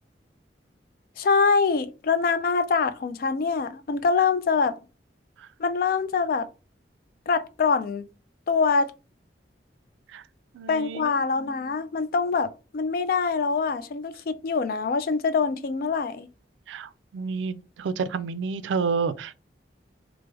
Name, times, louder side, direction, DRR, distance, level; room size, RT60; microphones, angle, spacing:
voice 1, 1.2-4.8 5.6-6.5 7.3-8.0 8.5-8.9 10.7-16.3, left 5 dB, 50° left, 0.3 m, -24 dB
voice 2, 10.5-11.1 16.7-19.3, right 5 dB, 90° right, 0.3 m, -29 dB
3.3 x 2.0 x 3.2 m
head